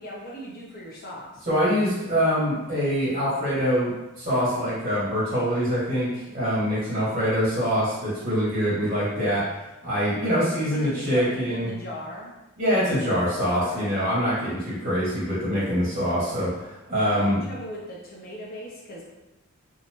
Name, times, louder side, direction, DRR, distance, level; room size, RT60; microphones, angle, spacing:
voice 1, 0.0-1.4 6.9-7.1 10.7-12.3 13.6-14.0 17.0-19.0, equal, 40° left, -4 dB, 0.7 m, -38 dB
voice 2, 1.5-9.4 9.8-11.7 12.6-17.4, equal, 40° right, -10 dB, 1.5 m, -24 dB
2.8 x 2.2 x 2.9 m, 0.98 s
head